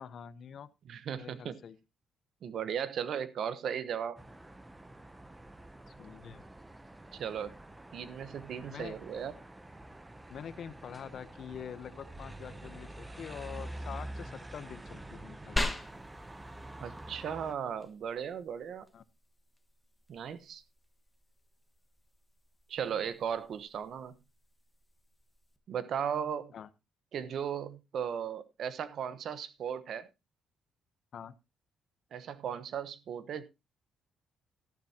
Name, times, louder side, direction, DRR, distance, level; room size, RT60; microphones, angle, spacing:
voice 1, 0.0-0.7 1.2-1.8 5.9-6.4 8.7-9.0 10.3-15.6 18.9-19.0 26.5-26.7 31.1-31.3, left 8 dB, 60° left, 0.9 m, -45 dB
voice 2, 0.8-1.6 2.4-4.2 7.1-7.5 7.9-9.3 16.8-18.9 20.1-20.6 22.7-24.2 25.7-26.5 27.1-30.1 32.1-33.4, right 8 dB, 65° right, 1.1 m, -36 dB
sound 1, 4.2-17.5, right 1 dB, 15° right, 0.9 m, -47 dB
sound 2, 15.6-25.6, left 1 dB, 10° left, 1.5 m, -43 dB
13.5 x 11.5 x 2.9 m
cardioid pair, 90°, 0 cm